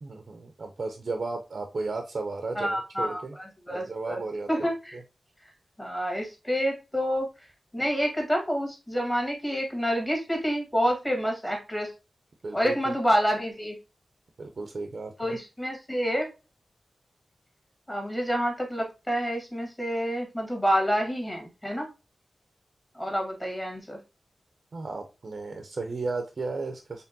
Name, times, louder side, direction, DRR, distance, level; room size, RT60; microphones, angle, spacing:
voice 1, 0.0-3.4 3.7-4.5 4.9-5.0 12.4-12.9 14.4-15.4 24.7-27.0, right 3 dB, 60° right, 5 dB, 0.5 m, -34 dB
voice 2, 2.5-3.2 3.7-4.2 4.5-5.0 5.8-7.3 7.7-11.9 12.5-13.8 15.2-16.3 17.9-21.9 22.9-24.0, equal, 15° left, 1 dB, 1.5 m, -28 dB
4.3 x 3.3 x 2.7 m, 0.27 s
wide cardioid pair, 95°, 0 cm